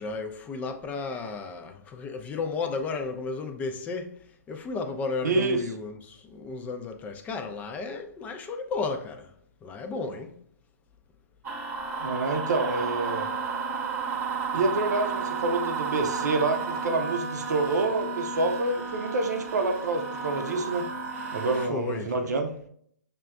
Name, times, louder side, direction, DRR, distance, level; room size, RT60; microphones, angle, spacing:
voice 1, 0.0-4.2 4.5-9.3 9.6-10.4 21.7-22.3, left 4 dB, 15° left, 0.4 m, -33 dB
voice 2, 5.2-5.6 12.0-13.3 14.5-20.9 21.3-22.5, right 3 dB, 75° right, 0.7 m, -27 dB
sound 1, 11.4-21.7, right 5 dB, 20° right, 1.0 m, -32 dB
6.5 x 2.4 x 2.3 m
hypercardioid pair, 130°, 9 cm